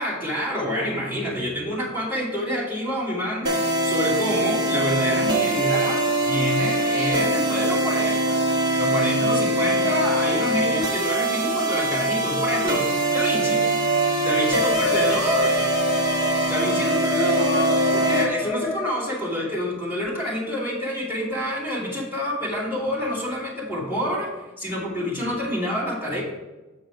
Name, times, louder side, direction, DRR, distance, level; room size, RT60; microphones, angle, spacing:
voice 1, 0.0-8.4 8.8-13.6 14.2-15.6 16.5-24.3 24.6-26.2, equal, 10° right, -6 dB, 2.7 m, -27 dB
sound 1, 3.4-18.3, right 1 dB, 50° right, 1.3 m, -23 dB
sound 2, 14.5-19.0, left 1 dB, 5° left, 0.7 m, -28 dB
7.4 x 4.9 x 4.8 m, 1.1 s
head